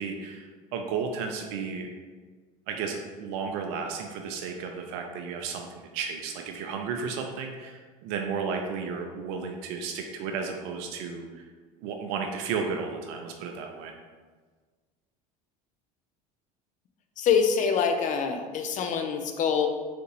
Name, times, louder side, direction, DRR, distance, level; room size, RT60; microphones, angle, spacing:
voice 1, 0.0-1.9 2.7-11.4 11.8-13.9, right 5 dB, 60° right, 3 dB, 0.4 m, -33 dB
voice 2, 17.2-19.7, left 6 dB, 40° left, 5 dB, 0.5 m, -25 dB
3.9 x 2.5 x 2.9 m, 1.4 s
hypercardioid pair, 75°, 20 cm